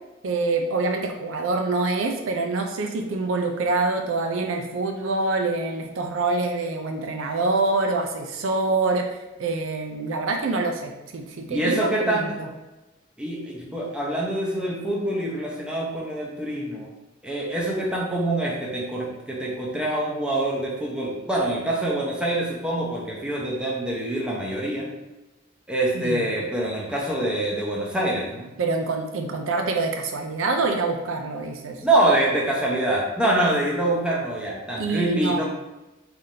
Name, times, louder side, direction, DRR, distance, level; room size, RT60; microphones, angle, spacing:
voice 1, 0.2-12.5 25.9-26.3 28.6-31.8 34.8-35.4, right 3 dB, 80° right, 3 dB, 0.5 m, -26 dB
voice 2, 11.5-12.3 13.2-16.9 17.2-24.9 25.7-28.5 31.8-35.4, right 1 dB, 5° right, -4 dB, 0.7 m, -25 dB
3.8 x 3.4 x 2.8 m, 1.0 s
head